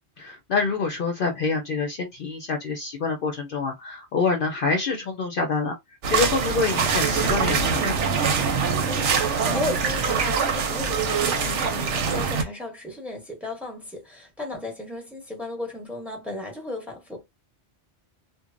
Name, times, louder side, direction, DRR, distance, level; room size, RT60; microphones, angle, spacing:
voice 1, 0.2-5.8 6.1-8.0, left 4 dB, 60° left, 0.7 m, -26 dB
sound 1, 6.0-12.4, right 5 dB, 80° right, 1.0 m, -24 dB
voice 2, 8.9-17.2, left 2 dB, ahead, 0.9 m, -34 dB
3.0 x 2.2 x 2.5 m
omnidirectional pair, 1.2 m